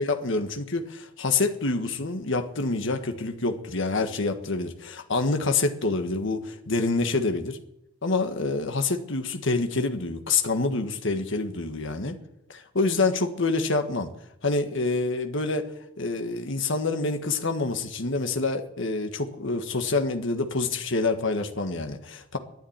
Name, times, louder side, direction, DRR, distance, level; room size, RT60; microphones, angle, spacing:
voice 1, 0.0-7.6 8.0-12.2 12.5-14.1 14.4-15.7 16.0-22.4, left 3 dB, 65° left, 6 dB, 1.5 m, -27 dB
12.0 x 10.0 x 9.6 m, 0.80 s
head